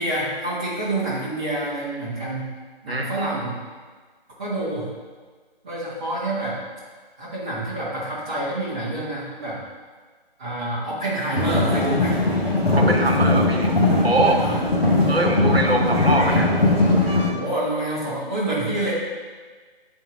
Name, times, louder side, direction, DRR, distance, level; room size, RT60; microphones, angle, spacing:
voice 1, 0.0-2.5 2.8-3.6 4.4-4.9 5.6-6.6 7.2-9.6 10.4-12.2 14.4-14.6 17.3-18.9, right 1 dB, 10° right, -11 dB, 0.5 m, -27 dB
sound 1, 11.3-17.3, left 2 dB, 85° left, 1.5 m, -20 dB
voice 2, 12.7-13.7 14.0-14.4 15.1-16.5, right 2 dB, 85° right, 2 dB, 1.0 m, -22 dB
8.8 x 4.4 x 2.6 m, 1.5 s
figure-of-eight pair, 145°, 30 cm